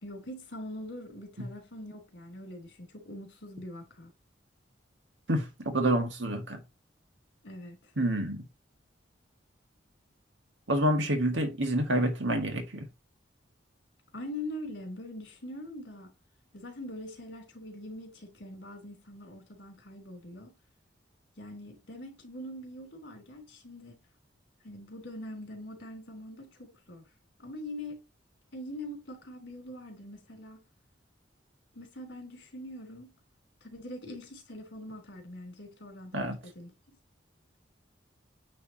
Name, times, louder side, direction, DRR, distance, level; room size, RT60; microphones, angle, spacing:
voice 1, 0.0-4.1 7.4-7.9 14.1-16.1 16.5-20.5 21.4-24.0 24.6-27.0 27.4-28.0 28.5-30.6 31.7-33.1 33.6-36.7, left 1 dB, 75° left, 3.3 m, -43 dB
voice 2, 5.3-6.6 8.0-8.4 10.7-12.9 36.1-36.4, right 1 dB, 85° right, 1.8 m, -28 dB
9.3 x 3.5 x 2.8 m
head